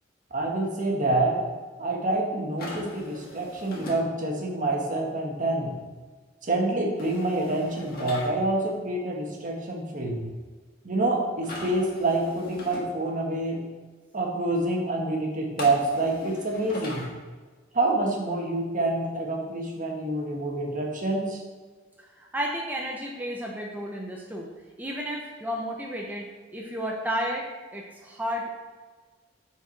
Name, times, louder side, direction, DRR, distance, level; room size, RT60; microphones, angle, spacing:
voice 1, 0.3-1.4 1.8-5.7 6.4-10.2 10.8-13.6 14.1-17.0 17.7-21.4, right 2 dB, 40° right, 0 dB, 1.3 m, -27 dB
sound 1, 2.6-4.0 7.0-8.3 11.4-12.8 15.6-17.1, left 1 dB, 50° left, 1.5 m, -40 dB
voice 2, 22.0-24.5 24.8-28.5, equal, 10° right, -1 dB, 0.6 m, -32 dB
6.5 x 4.6 x 4.5 m, 1.4 s
head